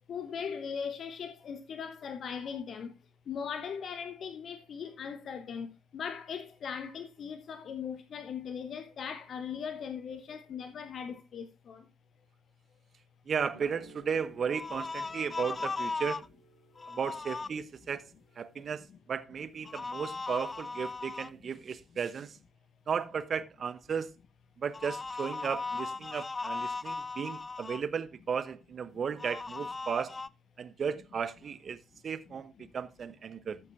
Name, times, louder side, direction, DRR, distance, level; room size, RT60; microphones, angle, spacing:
voice 1, 0.1-2.9 3.3-11.8, left 7 dB, 50° left, 1.1 m, -39 dB
voice 2, 13.3-16.3 16.9-22.4 22.9-24.2 24.6-30.2 30.6-31.8 32.0-33.6, right 6 dB, 45° right, 0.9 m, -35 dB
sound 1, 13.5-21.5, right 3 dB, 75° right, 3.8 m, -60 dB
sound 2, 14.5-16.3 16.8-17.5 19.7-21.3 24.7-27.8 29.2-30.3, left 4 dB, 25° left, 0.4 m, -37 dB
13.5 x 8.3 x 2.6 m
figure-of-eight pair, 45°, 0 cm